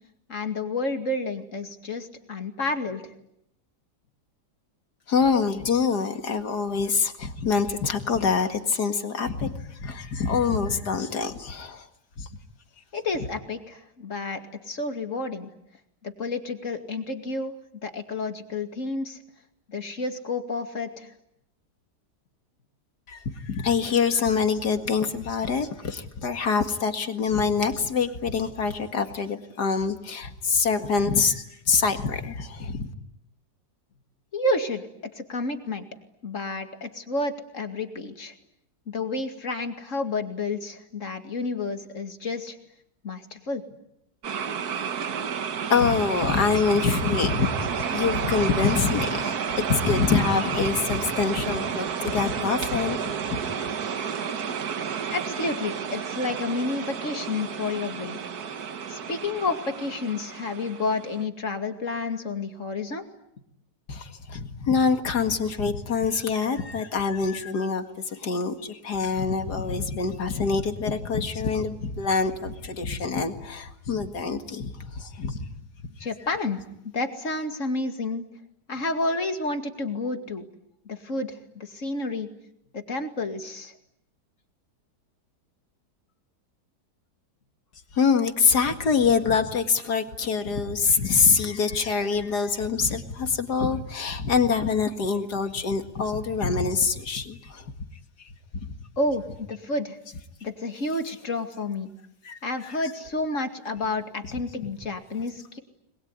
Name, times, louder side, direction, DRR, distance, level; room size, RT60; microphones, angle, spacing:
voice 1, 0.3-3.1 12.9-15.5 16.0-17.5 17.8-19.2 19.7-21.1 34.3-35.9 36.2-38.3 38.9-42.6 43.0-43.6 52.4-52.5 55.1-58.2 58.9-63.0 76.0-76.6 76.9-78.3 78.7-80.5 80.9-82.3 82.7-83.7 99.0-100.0 100.4-101.9 102.4-105.6, left 2 dB, 50° left, 7 dB, 2.6 m, -30 dB
voice 2, 5.1-11.9 12.2-12.3 23.1-32.9 45.7-53.7 63.9-75.5 87.9-97.7 98.2-98.7 102.2-102.8, left 5 dB, 75° left, 7 dB, 2.5 m, -25 dB
sound 1, 44.2-61.2, right 7 dB, 65° right, 1.8 m, -31 dB
28.5 x 22.0 x 9.5 m, 0.79 s
omnidirectional pair, 1.8 m